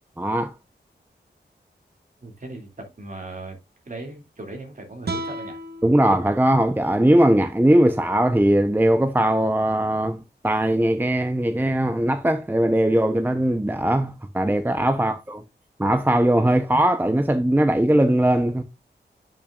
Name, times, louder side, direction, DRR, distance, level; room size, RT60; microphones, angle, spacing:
voice 1, 0.2-0.5 5.8-15.4 15.8-18.6, right 1 dB, 10° right, 0.7 m, -20 dB
voice 2, 2.2-3.6 3.9-5.6 15.0-15.2, right 2 dB, 45° right, 2.3 m, -38 dB
sound 1, 5.0-8.2, right 2 dB, 65° right, 1.2 m, -37 dB
8.8 x 5.9 x 2.4 m
wide cardioid pair, 105°, 18 cm